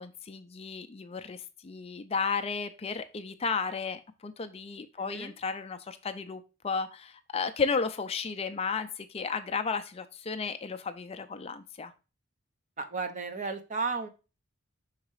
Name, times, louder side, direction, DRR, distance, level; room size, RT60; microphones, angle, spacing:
voice 1, 0.0-11.9, left 5 dB, 30° left, 9 dB, 0.4 m, -33 dB
voice 2, 5.0-5.3 12.8-14.1, right 4 dB, 40° right, 7 dB, 0.8 m, -34 dB
5.7 x 4.0 x 4.6 m, 0.31 s
head